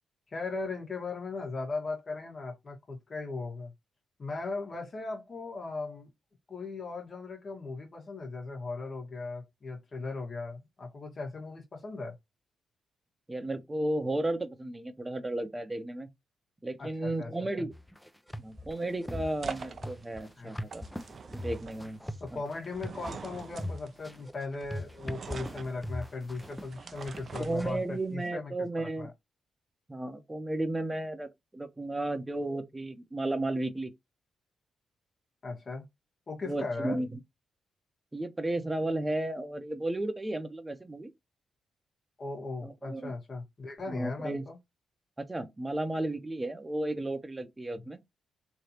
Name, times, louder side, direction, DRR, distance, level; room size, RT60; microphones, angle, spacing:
voice 1, 0.3-3.7 4.2-6.1 6.5-12.1 16.8-17.3 17.6-17.7 20.4-20.6 22.2-28.5 29.0-29.1 35.4-35.8 36.3-37.0 42.2-44.6, left 3 dB, 50° left, 1.5 m, -38 dB
voice 2, 13.3-16.1 16.6-17.7 18.4-20.8 21.3-22.0 22.3-22.4 27.4-29.1 29.9-33.9 36.4-37.2 38.1-41.1 42.6-43.1 43.9-44.4 45.2-48.0, right 1 dB, 20° right, 0.8 m, -33 dB
sound 1, 17.7-27.7, left 1 dB, 5° left, 0.5 m, -40 dB
sound 2, 18.3-28.1, right 5 dB, 55° right, 0.4 m, -45 dB
3.2 x 2.8 x 2.8 m
hypercardioid pair, 45°, 0 cm